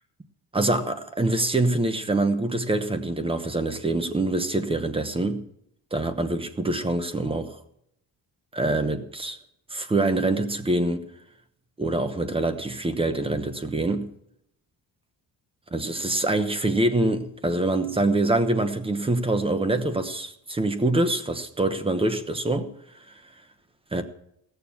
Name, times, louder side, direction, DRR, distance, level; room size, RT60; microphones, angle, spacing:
voice 1, 0.5-5.4 5.9-7.6 8.5-9.4 9.7-11.0 11.8-14.1 15.7-23.2 23.9-24.0, right 2 dB, 15° right, 1.0 m, -25 dB
17.0 x 6.9 x 7.1 m
cardioid pair, 160°, 38 cm